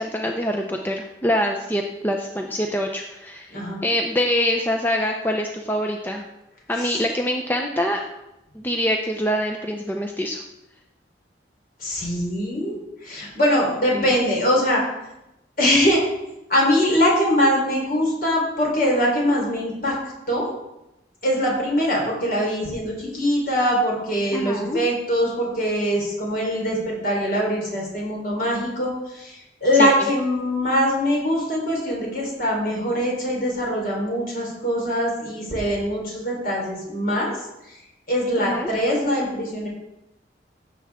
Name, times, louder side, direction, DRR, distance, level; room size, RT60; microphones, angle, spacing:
voice 1, 0.0-6.2 6.7-8.0 8.5-10.4 13.9-14.1 24.3-24.8 29.8-29.9 38.4-38.7, equal, 10° left, 2 dB, 0.6 m, -25 dB
voice 2, 11.8-14.8 15.6-16.0 16.5-19.9 20.3-20.5 21.2-37.3 37.7-37.8 38.1-39.7, equal, 50° left, -2 dB, 3.8 m, -22 dB
15.5 x 7.3 x 3.6 m, 0.92 s
head